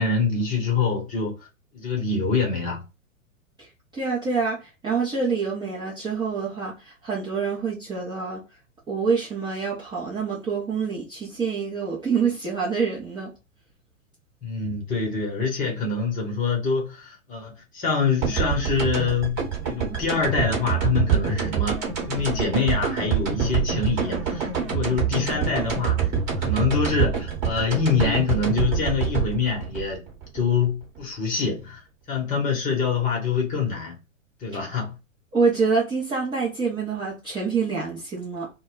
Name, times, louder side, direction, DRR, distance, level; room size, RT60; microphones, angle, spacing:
voice 1, 0.0-1.3 1.7-2.8 14.4-26.1 26.4-30.0 30.3-31.8 32.1-34.0 34.4-35.0, left 5 dB, 20° left, 1.0 m, -25 dB
voice 2, 3.9-8.4 8.9-13.3 35.3-38.5, right 5 dB, 10° right, 0.6 m, -26 dB
sound 1, 18.2-31.0, right 7 dB, 30° right, 1.1 m, -26 dB
2.2 x 2.1 x 3.7 m
hypercardioid pair, 110°, 40 cm